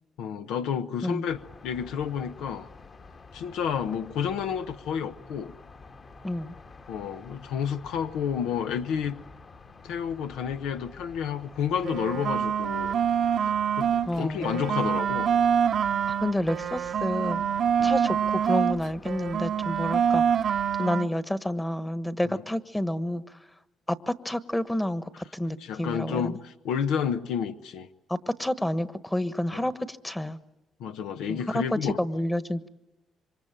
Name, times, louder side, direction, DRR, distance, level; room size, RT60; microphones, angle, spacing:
voice 1, 0.2-2.7 3.3-5.5 6.9-9.2 9.8-12.9 13.4-15.3 17.8-17.9 22.3-22.4 25.6-27.9 29.5-29.6 30.8-32.0, left 7 dB, 90° left, 9 dB, 1.0 m, -30 dB
sound 1, 1.3-20.8, left 3 dB, 45° left, 2.0 m, -49 dB
voice 2, 6.2-6.5 14.0-14.6 16.2-17.4 17.8-20.4 20.8-23.4 23.9-26.3 28.1-30.4 31.3-32.7, left 1 dB, 10° left, 13 dB, 1.2 m, -29 dB
sound 2, 11.8-14.1 14.4-18.8 19.0-21.1, right 8 dB, 60° right, 0.8 m, -25 dB
26.5 x 24.0 x 8.9 m, 1.0 s
cardioid pair, 90°, 0 cm